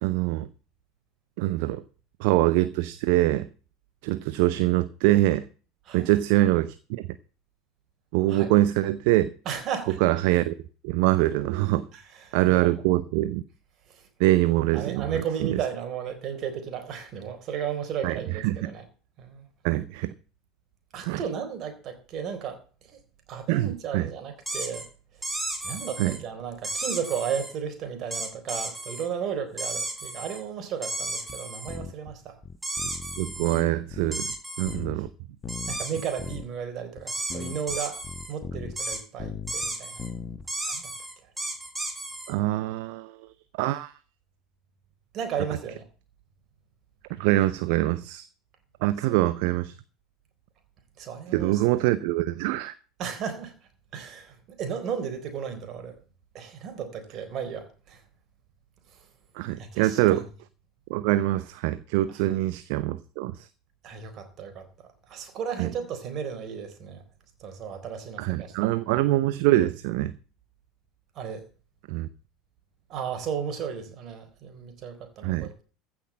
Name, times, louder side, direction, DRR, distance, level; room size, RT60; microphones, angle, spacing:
voice 1, 0.0-0.5 1.4-1.8 2.2-3.5 4.0-5.5 5.9-7.1 8.1-9.3 10.0-10.6 10.8-11.9 12.3-13.4 14.2-15.1 18.0-18.2 18.4-18.7 19.6-20.1 21.0-21.2 23.5-24.1 26.0-26.2 33.2-34.3 34.6-35.1 42.3-43.2 43.6-43.9 47.2-48.3 48.8-49.7 51.3-52.7 59.4-60.3 60.9-63.5 65.6-65.7 68.2-70.1 71.9-72.1 75.2-75.5, right 16 dB, 60° right, 0.6 m, -24 dB
voice 2, 9.5-10.0 11.9-12.7 13.9-14.1 14.7-18.8 19.2-19.4 20.9-23.0 23.3-24.9 25.6-32.4 35.7-38.0 38.3-40.1 40.7-40.9 45.1-45.8 49.1-49.2 51.0-51.6 53.0-53.5 53.9-56.0 56.3-58.0 59.6-60.2 62.1-62.3 63.8-67.0 67.4-68.5 71.2-71.4 72.9-75.6, right 7 dB, 45° right, 3.9 m, -34 dB
sound 1, 24.5-24.8 25.2-26.2 26.6-27.5 28.1-29.1 29.6-30.4 30.8-31.8 32.6-33.6 34.1-34.8 35.5-36.4 37.1-38.3 38.8-39.0 39.5-40.1 40.5-42.3, right 2 dB, 10° right, 3.7 m, -34 dB
sound 2, 31.3-31.4 31.7-32.1 32.4-34.4 34.7-35.1 35.4-35.9 36.2-36.5 37.0-37.1 37.3-39.7 40.0-40.5, left 5 dB, 30° left, 1.1 m, -38 dB
15.0 x 6.2 x 7.3 m
figure-of-eight pair, 75°, 0 cm